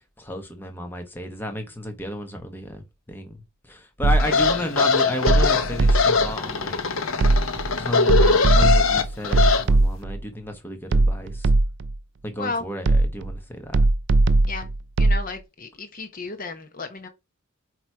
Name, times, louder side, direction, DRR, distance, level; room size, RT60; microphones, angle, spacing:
voice 1, 0.0-2.8 3.1-6.8 7.3-7.4 7.8-11.5 12.2-13.8, left 1 dB, 10° left, 1.0 m, -33 dB
sound 1, 4.0-4.5 5.3-6.3 7.2-7.7 8.1-10.2 10.9-12.0 12.8-13.4 13.7-15.2, right 2 dB, 60° right, 0.4 m, -19 dB
sound 2, 4.2-9.6, left 4 dB, 75° left, 0.9 m, -21 dB
voice 2, 15.0-17.1, left 3 dB, 45° left, 1.0 m, -33 dB
8.6 x 3.0 x 4.6 m
head